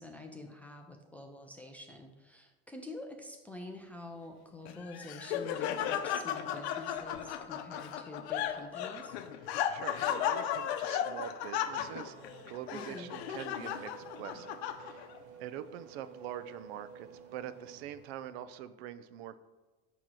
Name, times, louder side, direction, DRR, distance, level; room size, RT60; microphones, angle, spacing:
voice 1, 0.0-9.2 12.7-13.2, left 2 dB, 5° left, 2 dB, 0.3 m, -47 dB
Laughter, 4.7-15.2, left 10 dB, 85° left, 0.7 m, -35 dB
voice 2, 9.7-12.2 12.5-15.1 15.4-19.4, right 10 dB, 75° right, 13 dB, 0.6 m, -44 dB
Race car auto racing / Accelerating revving vroom, 11.3-18.5, right 5 dB, 50° right, 0.9 m, -53 dB
8.9 x 3.0 x 6.2 m, 1.2 s
supercardioid pair, 150°, 32 cm